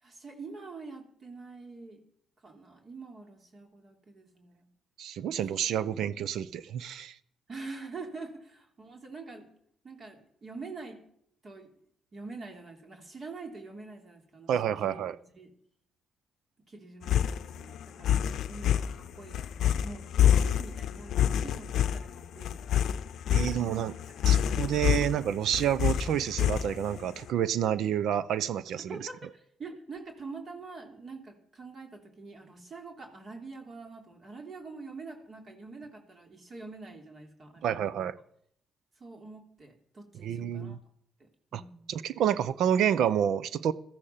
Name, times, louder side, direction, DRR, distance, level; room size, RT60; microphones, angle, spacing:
voice 1, 0.0-2.0 2.4-4.7 5.9-6.2 7.5-9.5 9.8-11.0 11.4-11.7 12.1-14.5 14.8-15.0 15.4-15.5 16.7-22.7 23.3-23.8 24.2-25.1 28.9-37.9 39.0-40.8 41.2-41.9, right 3 dB, 45° right, 2 dB, 3.1 m, -45 dB
voice 2, 5.0-7.1 14.5-15.2 23.3-24.0 24.3-29.1 37.6-38.1 40.2-40.8 41.5-41.6 41.9-43.7, right 9 dB, 75° right, 17 dB, 0.6 m, -29 dB
sound 1, 17.0-27.1, left 10 dB, 75° left, 0.6 m, -27 dB
15.0 x 14.0 x 5.8 m, 0.68 s
cardioid pair, 90°, 0 cm